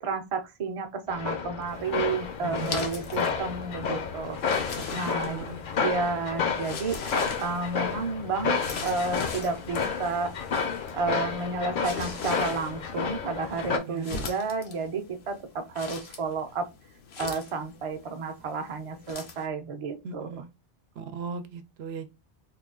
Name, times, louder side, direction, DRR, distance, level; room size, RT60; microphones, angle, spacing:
voice 1, 0.0-5.4 5.8-7.0 7.4-10.3 10.9-16.7 17.2-20.3, right 4 dB, 40° right, 0.5 m, -31 dB
sound 1, 1.1-13.8, left 6 dB, 60° left, 0.7 m, -31 dB
sound 2, 1.7-19.5, left 5 dB, 85° left, 1.0 m, -41 dB
voice 2, 2.4-3.0 4.9-5.6 13.7-14.2 20.0-20.5 21.0-22.1, right 5 dB, 80° right, 0.8 m, -38 dB
3.2 x 2.3 x 3.6 m
omnidirectional pair, 1.0 m